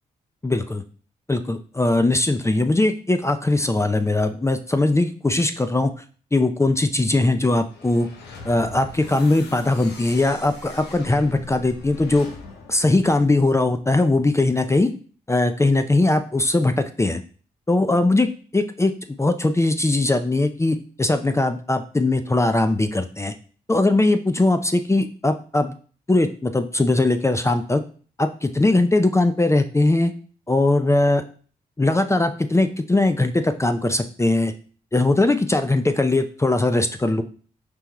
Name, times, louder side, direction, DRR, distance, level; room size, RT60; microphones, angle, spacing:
voice 1, 0.4-0.8 1.3-5.9 6.3-8.1 8.4-12.3 12.7-14.9 15.3-17.2 17.7-23.3 23.7-25.8 26.1-27.8 28.2-30.1 30.5-31.2 31.8-34.5 34.9-37.2, left 2 dB, 15° left, 8 dB, 0.4 m, -20 dB
sound 1, 7.7-13.9, left 3 dB, 80° left, 0.8 m, -41 dB
4.5 x 3.4 x 3.0 m, 0.41 s
supercardioid pair, 45°, 17 cm